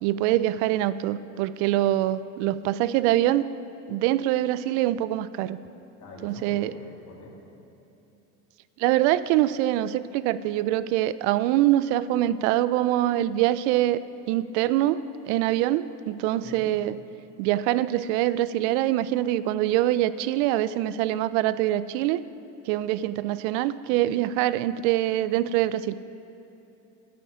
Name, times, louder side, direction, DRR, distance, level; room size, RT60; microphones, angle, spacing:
voice 1, 0.0-3.4 3.9-5.6 6.2-6.7 8.8-14.0 14.3-15.0 15.3-17.0 17.4-22.2 22.7-25.9, right 14 dB, 80° right, 16 dB, 0.5 m, -24 dB
voice 2, 6.0-7.4 16.4-16.6, left 2 dB, 55° left, -3 dB, 2.7 m, -44 dB
12.0 x 8.3 x 5.0 m, 2.9 s
supercardioid pair, 80°, 35 cm